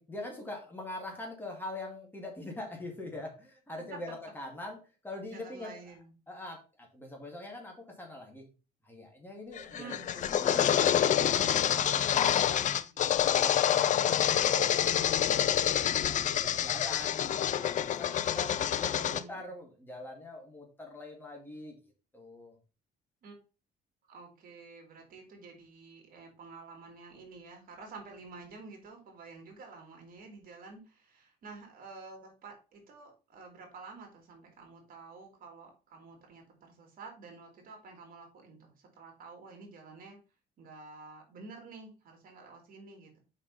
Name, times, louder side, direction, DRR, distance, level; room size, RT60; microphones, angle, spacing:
voice 1, 0.0-4.8 5.0-5.7 6.3-8.4 8.8-12.7 13.2-15.5 16.0-21.8 22.1-22.6, left 1 dB, 10° left, 1 dB, 2.3 m, -43 dB
voice 2, 3.8-4.1 5.3-6.1 9.7-10.1 11.6-13.0 18.9-19.5 23.2-23.4 24.1-40.2 40.6-43.2, right 4 dB, 60° right, 2 dB, 2.9 m, -50 dB
sound 1, 9.6-19.2, left 10 dB, 50° left, 0.5 m, -27 dB
5.4 x 4.9 x 5.4 m, 0.33 s
cardioid pair, 110°, 17 cm